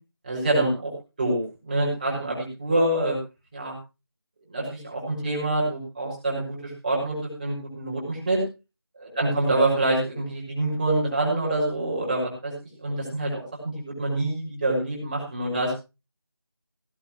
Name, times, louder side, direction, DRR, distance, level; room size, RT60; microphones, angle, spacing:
voice 1, 0.2-0.9 1.2-3.2 3.5-3.7 4.5-8.4 9.0-12.5 12.8-15.7, right 2 dB, 20° right, -3 dB, 5.9 m, -26 dB
17.5 x 13.5 x 3.1 m, 0.29 s
figure-of-eight pair, 170°, 13 cm